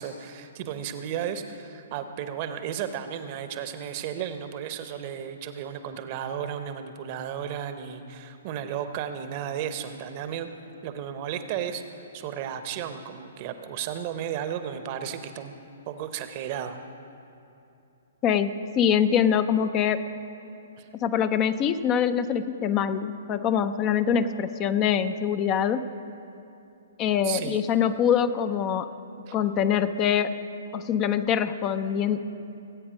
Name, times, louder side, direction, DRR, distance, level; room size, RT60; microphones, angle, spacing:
voice 1, 0.0-10.5 10.8-15.5 15.9-16.8 20.8-20.9 27.2-27.6 29.3-29.4, right 9 dB, 35° right, 9 dB, 0.9 m, -34 dB
voice 2, 18.2-20.1 20.9-25.8 27.0-28.9 29.3-30.4 30.7-32.2, left 8 dB, 25° left, 10 dB, 0.5 m, -24 dB
19.0 x 8.7 x 5.1 m, 2.7 s
figure-of-eight pair, 120°, 0 cm